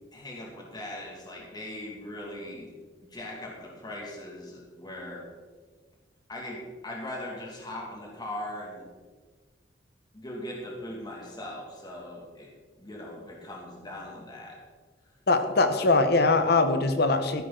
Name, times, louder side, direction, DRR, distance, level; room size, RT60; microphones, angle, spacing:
voice 1, 0.1-2.7 3.0-5.3 6.3-8.9 10.1-12.5 12.8-14.6, left 1 dB, 25° left, -2 dB, 2.3 m, -40 dB
voice 2, 15.3-17.5, left 3 dB, 60° left, 8 dB, 1.2 m, -22 dB
14.5 x 11.5 x 4.0 m, 1.5 s
head